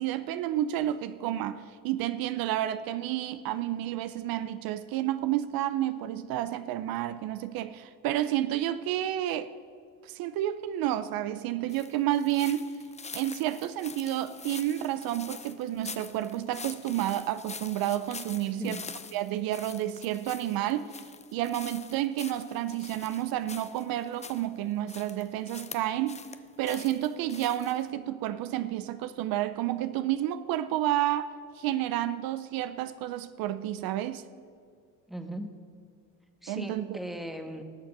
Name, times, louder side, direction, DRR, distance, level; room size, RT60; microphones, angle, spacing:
voice 1, 0.0-9.5 10.0-12.7 13.1-18.8 19.1-21.0 21.3-26.2 26.6-34.2 36.5-37.0, right 12 dB, 70° right, 0.6 m, -30 dB
sound 1, 11.7-24.5 24.9-26.4 26.6-27.9, left 5 dB, 20° left, 0.7 m, -45 dB
voice 2, 35.1-35.5 36.4-37.6, equal, ahead, 1.3 m, -38 dB
18.5 x 6.7 x 5.9 m
supercardioid pair, 85°, 37 cm